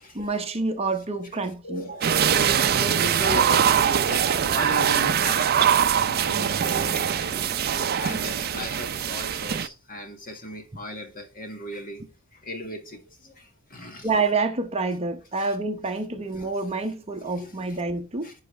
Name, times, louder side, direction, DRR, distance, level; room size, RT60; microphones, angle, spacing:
voice 1, 0.1-2.0 14.0-18.3, right 3 dB, 30° right, 0.8 m, -28 dB
voice 2, 1.6-5.5 5.9-12.0 12.4-14.1 15.4-15.5 16.4-16.5 17.2-17.8 18.2-18.3, left 1 dB, 40° left, 1.8 m, -37 dB
sound 1, 2.0-9.7, right 8 dB, 45° right, 0.5 m, -22 dB
10.5 x 4.9 x 3.3 m
head